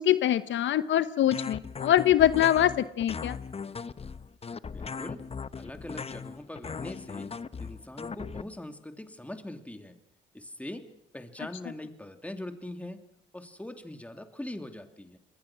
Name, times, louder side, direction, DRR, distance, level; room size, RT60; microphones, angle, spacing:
voice 1, 0.0-3.4, left 11 dB, 70° left, 14 dB, 0.9 m, -24 dB
sound 1, 1.3-8.4, left 5 dB, 30° left, 0.9 m, -38 dB
voice 2, 4.7-5.3 5.6-10.0 10.3-13.1 13.3-15.2, left 1 dB, 5° left, 7 dB, 2.9 m, -42 dB
27.5 x 21.5 x 6.2 m, 0.70 s
cardioid pair, 90°, 20 cm